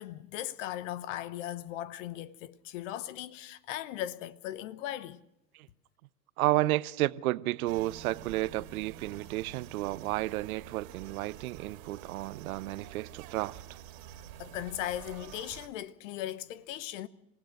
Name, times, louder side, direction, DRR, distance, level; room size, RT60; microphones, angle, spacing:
voice 1, 0.0-5.2 14.4-17.1, left 12 dB, 50° left, 1.0 m, -38 dB
voice 2, 6.4-13.6, right 17 dB, 60° right, 0.7 m, -32 dB
sound 1, 7.6-15.7, right 11 dB, 45° right, 2.4 m, -48 dB
27.0 x 16.5 x 6.4 m
hypercardioid pair, 105°, 48 cm